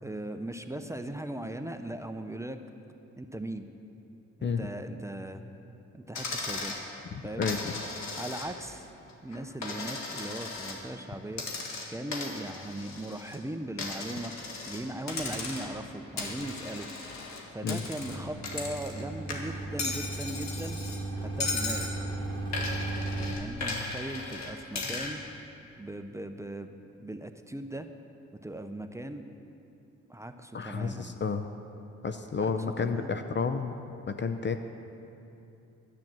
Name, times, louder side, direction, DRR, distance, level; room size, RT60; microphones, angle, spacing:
voice 1, 0.0-2.6 3.2-3.6 4.4-5.4 5.9-6.8 7.2-7.5 8.1-8.9 9.2-16.9 17.5-20.8 21.2-21.9 23.2-25.2 25.8-26.7 27.0-27.9 28.4-29.2 30.1-31.2 32.4-32.5 32.8-33.2, right 1 dB, 10° right, 7 dB, 0.6 m, -38 dB
Coin (dropping), 6.1-6.8 7.4-8.7 9.1-10.8 11.3-13.4 13.8-14.8 15.1-15.8 16.2-19.0 19.3-21.0 21.4-21.9 22.5-25.1, left 3 dB, 70° left, 1.7 m, -36 dB
voice 2, 7.4-7.7 17.6-17.8 30.5-31.5 32.0-33.7 34.1-34.6, left 5 dB, 40° left, 8 dB, 0.6 m, -30 dB
sound 1, 18.0-23.3, right 2 dB, 15° left, 1.6 m, -36 dB
10.5 x 8.6 x 7.6 m, 2.9 s
cardioid pair, 75°, 29 cm